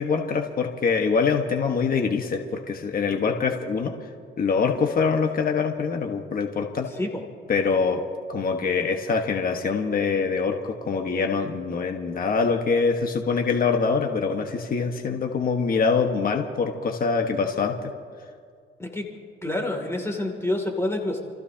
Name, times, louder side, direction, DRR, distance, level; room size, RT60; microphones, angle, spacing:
voice 1, 0.0-3.9 4.4-6.9 7.5-8.0 8.3-17.9, left 5 dB, 45° left, 3 dB, 1.4 m, -24 dB
voice 2, 19.4-21.2, left 1 dB, 15° left, 1 dB, 2.7 m, -27 dB
29.5 x 15.0 x 2.9 m, 2.2 s
cardioid pair, 90°, 20 cm